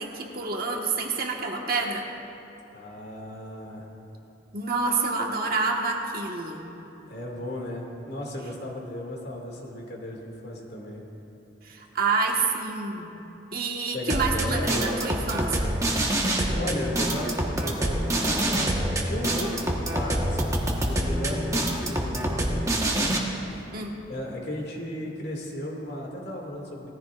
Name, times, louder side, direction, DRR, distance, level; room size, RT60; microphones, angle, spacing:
voice 1, 0.0-2.0 4.5-6.7 11.6-13.1 13.5-15.7 23.7-24.0, right 4 dB, 55° right, 0 dB, 1.4 m, -28 dB
voice 2, 2.7-3.9 7.1-11.0 13.9-15.1 16.6-23.2 24.1-26.9, left 1 dB, 60° left, -1 dB, 2.2 m, -35 dB
sound 1, 14.1-23.2, right 1 dB, 15° right, 1.3 m, -26 dB
19.5 x 14.5 x 2.5 m, 2.9 s
head